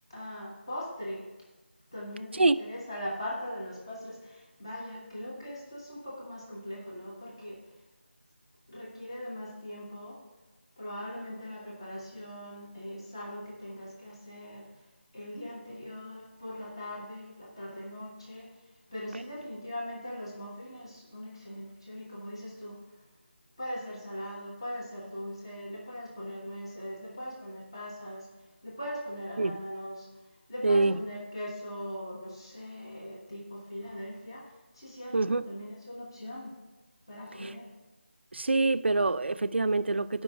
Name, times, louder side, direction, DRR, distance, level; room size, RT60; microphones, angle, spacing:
voice 1, 0.1-1.3 1.9-7.7 8.7-10.2 10.8-14.7 15.1-18.6 18.9-22.8 23.6-28.3 28.6-30.1 30.5-34.5 34.7-36.5 37.1-37.7, equal, 25° left, 1.2 m, -40 dB
voice 2, 30.6-31.0 35.1-35.5 37.4-37.6 38.3-40.2, right 3 dB, 70° right, 0.4 m, -26 dB
8.1 x 5.4 x 6.1 m
figure-of-eight pair, 180°, 6 cm